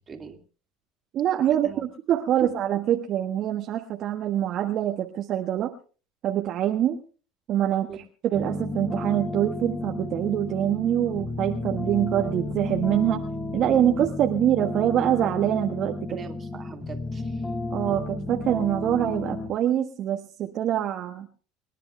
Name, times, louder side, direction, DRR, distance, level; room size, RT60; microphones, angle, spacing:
voice 1, 0.1-0.4 1.6-1.8 2.4-2.5 7.9-8.0 16.1-17.4, right 5 dB, 30° right, 5 dB, 2.9 m, -38 dB
voice 2, 1.1-5.7 6.2-7.0 7.5-13.2 13.5-16.2 17.7-21.3, right 11 dB, 50° right, 3 dB, 1.4 m, -25 dB
sound 1, 8.3-19.5, left 2 dB, 20° left, 5.1 m, -32 dB
28.5 x 10.0 x 3.3 m, 0.38 s
supercardioid pair, 90°, 0 cm